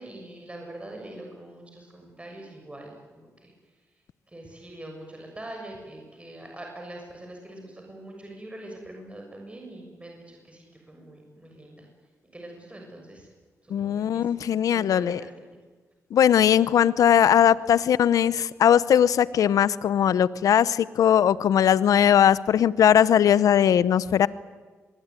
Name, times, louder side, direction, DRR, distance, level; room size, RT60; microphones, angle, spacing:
voice 1, 0.0-3.5 4.3-11.9 12.3-13.3 13.6-15.5, right 1 dB, 20° right, 1 dB, 6.9 m, -43 dB
voice 2, 13.7-15.2 16.1-24.3, left 9 dB, 80° left, 18 dB, 0.8 m, -20 dB
24.5 x 21.5 x 9.8 m, 1.4 s
supercardioid pair, 55°, 6 cm